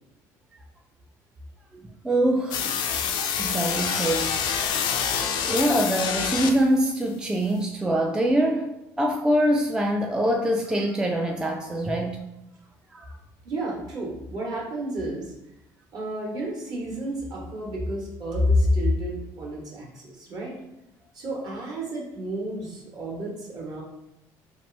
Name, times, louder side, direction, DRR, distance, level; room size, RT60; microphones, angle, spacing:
voice 1, 1.7-2.7 3.4-4.3 5.4-8.7 9.0-12.2 12.9-13.1, right 1 dB, 10° right, 1 dB, 0.3 m, -24 dB
sound 1, 2.5-6.8, left 7 dB, 70° left, 0.4 m, -26 dB
voice 2, 13.4-15.3 15.9-20.5 21.1-23.8, left 1 dB, 55° right, -3 dB, 1.2 m, -29 dB
2.9 x 2.4 x 3.2 m, 0.88 s
supercardioid pair, 90°, 8 cm